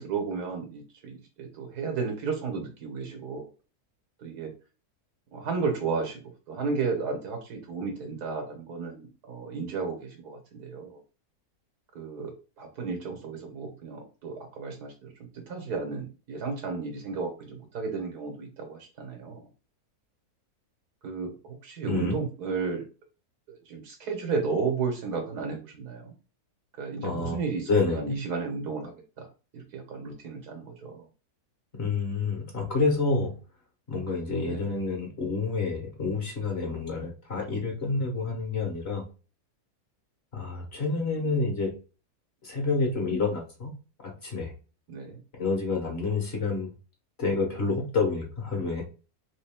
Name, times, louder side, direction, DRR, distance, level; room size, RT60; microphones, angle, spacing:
voice 1, 0.0-3.5 4.2-4.5 5.3-6.2 6.5-11.0 12.0-12.3 12.6-19.5 21.0-22.8 23.5-26.1 26.8-29.3 29.5-31.1 34.4-34.7 44.9-45.2, right 5 dB, 90° right, 4 dB, 1.8 m, -33 dB
voice 2, 21.8-22.2 27.0-27.4 27.7-28.2 31.7-33.4 33.9-39.0 40.3-41.7 42.4-43.7 44.0-44.5 45.3-46.7 47.2-48.8, left 3 dB, 45° left, 0 dB, 1.5 m, -28 dB
3.9 x 3.2 x 3.5 m, 0.34 s
omnidirectional pair, 1.6 m